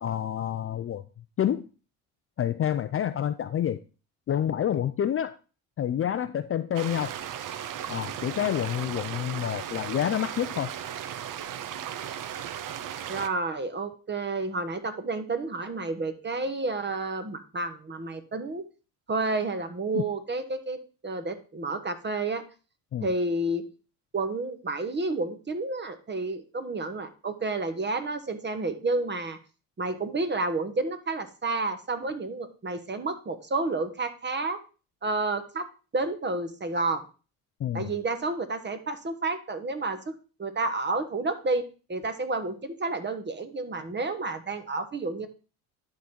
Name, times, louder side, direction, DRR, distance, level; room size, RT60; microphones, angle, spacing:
voice 1, 0.0-1.0 1.4-1.7 2.4-3.8 4.3-5.3 5.8-7.1 7.9-10.7 19.9-20.0 22.9-23.1 37.6-37.9, left 10 dB, 35° left, 11 dB, 0.4 m, -28 dB
sound 1, 6.7-13.3, right 10 dB, 50° right, 0.7 m, -36 dB
voice 2, 13.1-18.6 19.1-20.8 21.0-22.4 23.0-23.6 24.1-29.4 29.8-34.6 35.0-35.7 35.9-37.0 37.7-40.1 40.4-41.6 41.9-45.3, right 3 dB, 25° right, 10 dB, 1.2 m, -30 dB
11.0 x 3.9 x 4.3 m, 0.34 s
supercardioid pair, 85°, 40 cm